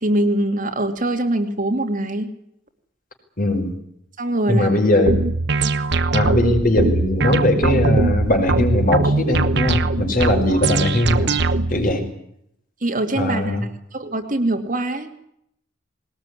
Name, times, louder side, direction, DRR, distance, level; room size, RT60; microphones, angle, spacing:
voice 1, 0.0-2.3 4.2-4.8 5.6-5.7 12.8-13.6 13.9-15.1, right 1 dB, 40° right, 6 dB, 2.4 m, -23 dB
voice 2, 3.4-3.7 4.5-5.2 6.1-11.3 11.7-12.0 13.2-13.6, left 1 dB, 45° left, 4 dB, 5.2 m, -19 dB
sound 1, 5.1-11.9, right 3 dB, 60° right, 1.0 m, -21 dB
20.5 x 19.0 x 9.8 m, 0.76 s
head